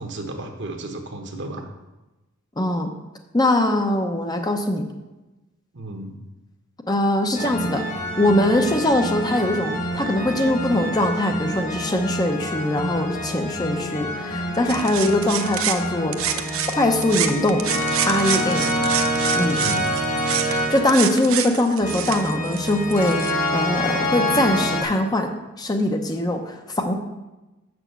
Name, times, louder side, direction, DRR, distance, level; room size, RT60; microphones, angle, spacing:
voice 1, 0.0-1.7 5.7-6.1 18.8-18.9 19.6-19.9, right 2 dB, 55° right, 4 dB, 1.2 m, -33 dB
voice 2, 2.6-2.9 3.3-4.9 6.9-7.8 8.2-17.6 18.1-18.7 19.4-19.6 20.5-25.3 25.6-26.9, left 1 dB, 20° left, 4 dB, 0.7 m, -22 dB
sound 1, 7.3-24.8, equal, 40° left, 1.6 m, -27 dB
sound 2, 14.7-16.8 17.0-23.3, right 10 dB, 75° right, 0.6 m, -28 dB
7.3 x 6.1 x 6.9 m, 1.0 s
head